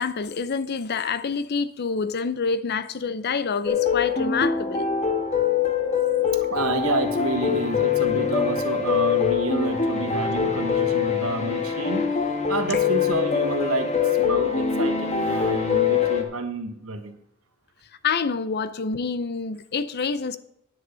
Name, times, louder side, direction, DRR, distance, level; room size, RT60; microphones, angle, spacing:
voice 1, 0.0-4.9 18.0-20.4, left 5 dB, 50° left, 0.6 m, -27 dB
sound 1, 3.7-16.2, left 7 dB, 35° left, 1.3 m, -23 dB
voice 2, 6.5-17.2, right 2 dB, 80° right, 1.3 m, -29 dB
10.0 x 6.2 x 6.8 m
head